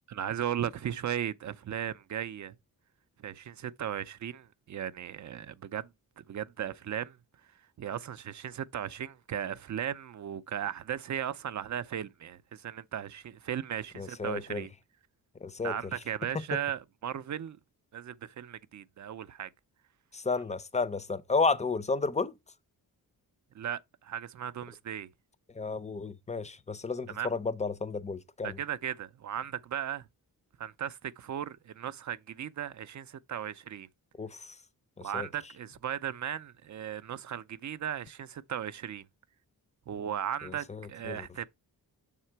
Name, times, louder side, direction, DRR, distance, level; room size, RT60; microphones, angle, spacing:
voice 1, 0.1-2.6 3.2-5.9 6.2-7.2 7.8-14.7 15.6-17.6 17.9-19.5 23.5-25.1 27.1-27.3 28.4-30.1 30.6-33.9 35.0-39.0 39.9-41.5, right 9 dB, 50° right, 0.4 m, -36 dB
voice 2, 14.0-14.6 15.4-15.9 16.3-16.4 20.1-22.3 25.5-28.6 34.2-34.6 35.0-35.3 40.4-41.3, left 4 dB, 20° left, 0.5 m, -32 dB
6.6 x 3.7 x 4.4 m
wide cardioid pair, 110°, 38 cm